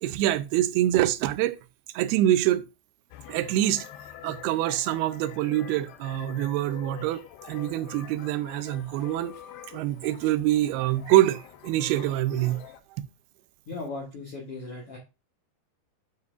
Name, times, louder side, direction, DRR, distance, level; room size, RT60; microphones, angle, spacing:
voice 1, 0.0-1.6 1.9-2.6 3.3-3.9 4.2-9.3 9.7-12.6, right 14 dB, 85° right, 2.5 m, -25 dB
sound 1, 3.1-12.8, left 11 dB, 85° left, 2.6 m, -46 dB
voice 2, 13.7-15.0, left 3 dB, 70° left, 1.4 m, -37 dB
9.5 x 5.2 x 2.4 m
omnidirectional pair, 4.5 m